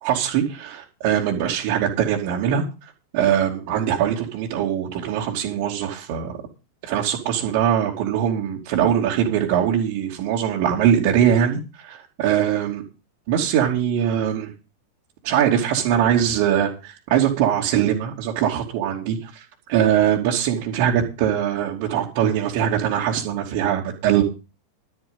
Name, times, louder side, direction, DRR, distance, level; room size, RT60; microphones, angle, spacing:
voice 1, 0.0-2.6 3.1-6.3 6.9-11.6 11.9-12.8 13.3-14.5 15.2-16.7 17.1-19.2 19.7-24.2, right 9 dB, 45° right, 2.8 m, -21 dB
12.5 x 8.9 x 5.5 m
figure-of-eight pair, 90°, 0 cm